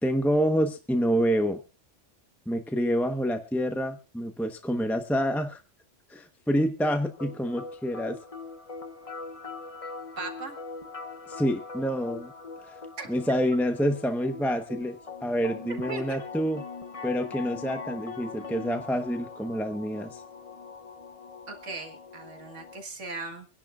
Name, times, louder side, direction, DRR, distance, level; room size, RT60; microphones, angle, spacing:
voice 1, 0.0-1.6 2.5-5.6 6.1-8.2 11.3-12.3 12.6-12.8 13.1-16.6 17.0-20.2, equal, ahead, 6 dB, 1.0 m, -27 dB
sound 1, 6.8-22.8, left 4 dB, 30° left, 1.1 m, -42 dB
voice 2, 10.2-10.6 13.0-13.1 15.9-16.2 21.5-23.5, right 3 dB, 85° right, 5 dB, 2.1 m, -38 dB
25.5 x 11.0 x 2.5 m, 0.29 s
omnidirectional pair, 1.2 m